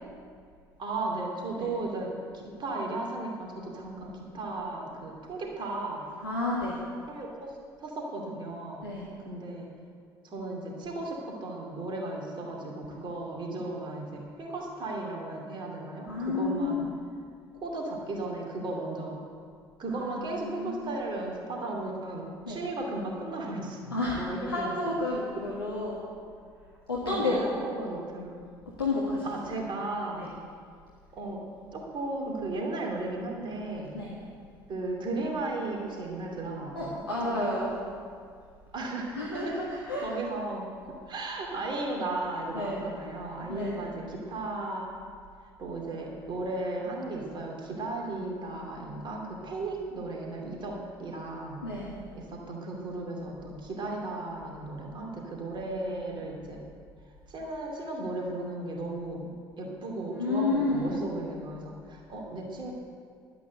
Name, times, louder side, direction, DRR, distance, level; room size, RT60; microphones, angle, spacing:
voice 1, 0.8-6.0 7.1-8.8 9.2-9.7 10.2-16.8 17.6-19.2 19.8-24.7 25.4-25.5 27.1-28.4 29.2-30.3 31.1-31.4 31.7-33.9 34.7-37.5 38.7-44.9 45.6-51.6 52.1-56.6 57.3-59.2 59.6-62.7, right 2 dB, 40° right, 0 dB, 2.6 m, -35 dB
voice 2, 6.2-6.8 8.8-9.1 16.1-16.9 19.9-20.9 22.4-22.6 23.9-26.0 26.9-27.4 28.8-29.6 30.1-30.3 33.9-34.2 36.7-37.7 39.1-40.1 42.5-42.8 43.5-43.9 51.6-52.0 60.1-60.9, left 2 dB, 80° left, -6 dB, 1.6 m, -31 dB
11.5 x 9.2 x 7.9 m, 2.2 s
figure-of-eight pair, 55°, 12 cm